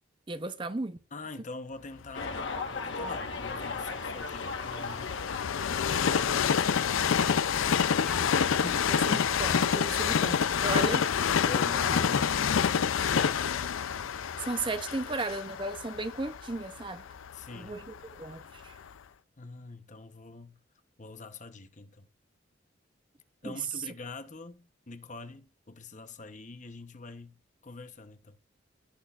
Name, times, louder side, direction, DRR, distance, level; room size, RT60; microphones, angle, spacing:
voice 1, 0.3-1.0 8.9-11.1 14.4-17.0 17.6-18.8 23.4-23.6, right 2 dB, 25° right, 0.6 m, -35 dB
voice 2, 1.1-5.2 5.8-7.3 8.6-9.0 11.4-13.7 17.3-17.9 19.4-20.6 21.0-22.1 23.4-28.4, left 3 dB, 40° left, 0.9 m, -45 dB
sound 1, 2.1-7.4, left 4 dB, 70° left, 1.3 m, -38 dB
Train, 2.3-18.2 18.8-18.9, left 7 dB, 85° left, 0.5 m, -28 dB
sound 2, 6.0-6.3 7.2-7.5 8.1-12.6 12.9-13.2 15.6-15.7, equal, ahead, 1.1 m, -49 dB
17.0 x 6.3 x 2.4 m
head